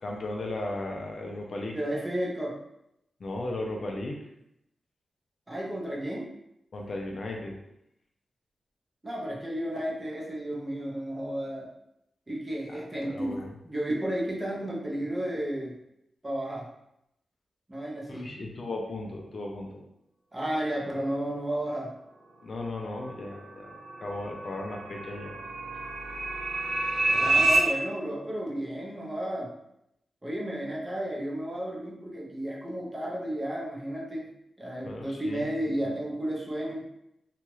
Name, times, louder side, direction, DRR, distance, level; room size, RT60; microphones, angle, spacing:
voice 1, 0.0-1.8 3.2-4.2 6.7-7.6 12.7-12.8 13.0-13.5 18.1-19.9 22.4-23.7 24.0-25.3 27.1-27.5 34.8-35.4 35.8-35.9, left 2 dB, 50° left, 0 dB, 0.4 m, -36 dB
voice 2, 1.7-2.6 5.5-6.3 9.0-11.7 12.3-13.4 13.6-15.7 16.2-16.7 17.7-18.3 20.3-21.9 27.1-29.5 30.2-34.3 34.6-36.8, right 1 dB, 15° right, -4 dB, 0.6 m, -32 dB
sound 1, 23.3-27.6, right 2 dB, 70° right, 0.5 m, -28 dB
2.8 x 2.3 x 3.0 m, 0.81 s
wide cardioid pair, 160°, 0 cm